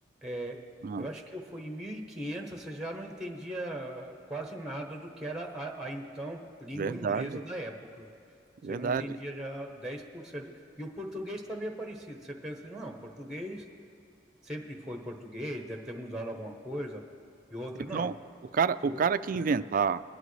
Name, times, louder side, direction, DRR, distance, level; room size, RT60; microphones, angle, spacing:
voice 1, 0.2-0.6 1.0-8.1 8.7-10.5 10.8-13.6 14.4-17.0 17.5-18.1 18.8-19.0 19.4-19.5, right 1 dB, 5° right, 3 dB, 1.0 m, -39 dB
voice 2, 6.8-7.4 8.6-9.2 17.9-18.1 18.5-20.0, right 5 dB, 45° right, 14 dB, 0.3 m, -28 dB
23.5 x 11.0 x 3.2 m, 2.7 s
head